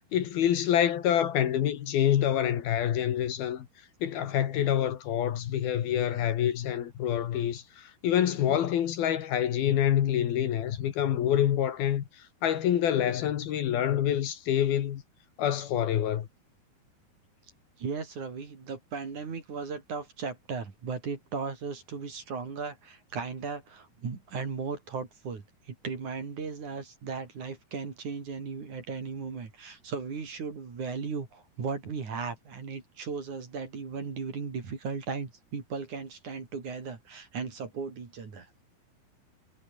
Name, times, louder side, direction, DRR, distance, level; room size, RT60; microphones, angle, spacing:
voice 1, 0.1-3.7 4.0-12.0 12.4-15.0 15.4-16.3, left 10 dB, 65° left, 3.5 m, -26 dB
voice 2, 17.8-38.5, right 5 dB, 45° right, 5.2 m, -36 dB
omnidirectional pair, 4.8 m